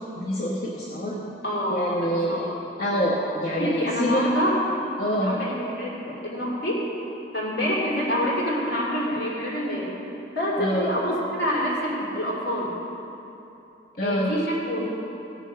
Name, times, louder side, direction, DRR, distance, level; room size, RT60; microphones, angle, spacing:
voice 1, 0.2-1.2 1.7-2.5 2.8-4.2 5.0-5.3 10.6-10.9 14.0-14.3, equal, 50° left, -6 dB, 1.2 m, -26 dB
voice 2, 1.4-2.6 3.5-4.6 5.2-6.9 7.3-9.9 10.3-12.7 14.0-14.9, equal, 70° left, -5 dB, 3.1 m, -27 dB
16.5 x 6.4 x 5.2 m, 2.9 s
head